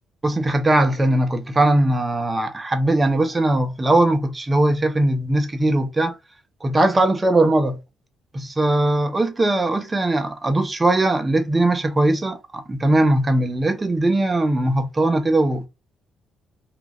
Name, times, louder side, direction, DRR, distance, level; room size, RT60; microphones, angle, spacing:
voice 1, 0.2-6.1 6.6-7.8 8.3-15.7, right 1 dB, 20° right, 0.7 m, -20 dB
3.0 x 2.5 x 2.3 m
cardioid pair, 90°, 0 cm